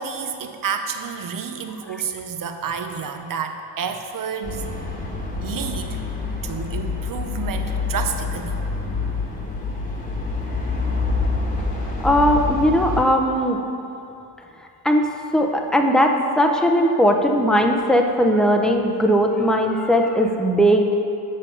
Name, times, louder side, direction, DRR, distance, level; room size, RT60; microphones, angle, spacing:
voice 1, 0.0-4.6 5.4-6.0 6.4-8.6 11.4-11.6 12.0-12.1, right 6 dB, 55° right, 7 dB, 0.7 m, -30 dB
sound 1, 4.4-13.0, left 3 dB, 20° left, 1.3 m, -26 dB
voice 2, 12.0-13.6 14.8-20.9, equal, ahead, 2 dB, 0.6 m, -18 dB
6.8 x 6.5 x 5.6 m, 2.8 s
cardioid pair, 100°, 40 cm